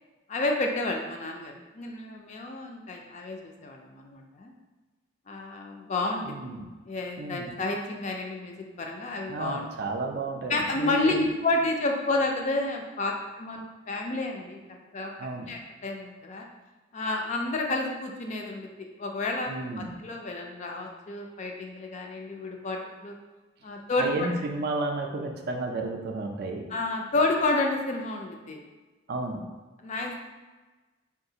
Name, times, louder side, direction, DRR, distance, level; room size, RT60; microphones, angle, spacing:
voice 1, 0.3-4.5 5.3-6.4 6.9-9.7 10.5-14.6 14.9-15.1 15.5-16.5 16.9-23.1 23.6-24.3 26.7-28.6 29.8-30.2, left 2 dB, 35° left, 1 dB, 0.3 m, -30 dB
voice 2, 6.2-6.7 7.2-7.5 9.3-11.3 15.2-15.5 19.5-19.9 24.0-26.6 29.1-29.4, right 2 dB, 50° right, 3 dB, 0.4 m, -32 dB
3.7 x 2.4 x 2.7 m, 1.2 s
head